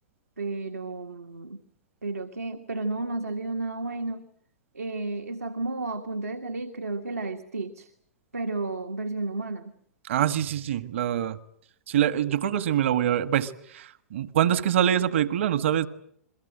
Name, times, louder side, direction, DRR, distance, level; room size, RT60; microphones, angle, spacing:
voice 1, 0.4-1.6 2.0-4.2 4.7-7.9 8.3-9.8, right 3 dB, 80° right, 1.7 m, -32 dB
voice 2, 10.1-11.4 11.9-15.9, right 10 dB, 55° right, 1.5 m, -25 dB
29.5 x 22.5 x 7.8 m
figure-of-eight pair, 105°, 8 cm